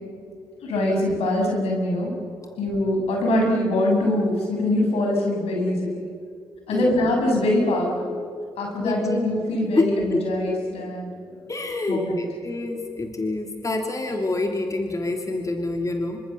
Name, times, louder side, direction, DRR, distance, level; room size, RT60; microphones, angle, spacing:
voice 1, 0.6-2.1 2.6-6.1 6.7-8.1 8.6-11.4 11.9-12.2, left 1 dB, 75° left, 0 dB, 7.2 m, -23 dB
voice 2, 8.8-9.2 9.8-10.2 11.5-16.2, left 2 dB, 30° left, 3 dB, 3.1 m, -27 dB
27.5 x 25.5 x 7.0 m, 2.3 s
supercardioid pair, 45°, 10 cm